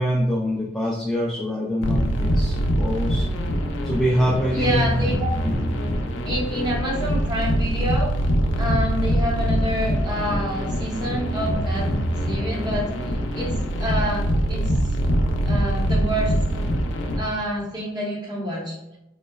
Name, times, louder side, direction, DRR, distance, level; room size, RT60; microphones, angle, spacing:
voice 1, 0.0-3.3 3.8-4.9 5.4-5.9, equal, ahead, -6 dB, 0.3 m, -25 dB
sound 1, 1.8-17.2, equal, 80° left, 0.5 m, -24 dB
voice 2, 4.5-5.3 6.3-8.1 8.6-11.9 12.3-12.9 13.3-13.5 13.8-14.2 14.5-14.6 15.5-16.3 17.2-18.8, equal, 20° right, -3 dB, 0.8 m, -27 dB
3.9 x 3.0 x 2.3 m, 0.90 s
head